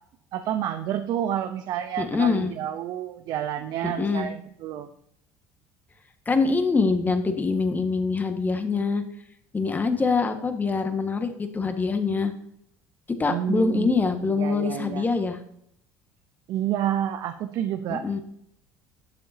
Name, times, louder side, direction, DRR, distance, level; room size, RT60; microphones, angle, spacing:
voice 1, 0.3-4.9 13.3-13.9 14.4-15.1 16.5-18.0, right 10 dB, 60° right, 8 dB, 0.7 m, -29 dB
voice 2, 2.0-2.5 3.8-4.3 6.2-9.0 9.5-12.3 13.2-15.4 17.9-18.2, left 4 dB, 25° left, 7 dB, 1.5 m, -24 dB
11.5 x 7.5 x 2.8 m, 0.71 s
supercardioid pair, 80°, 8 cm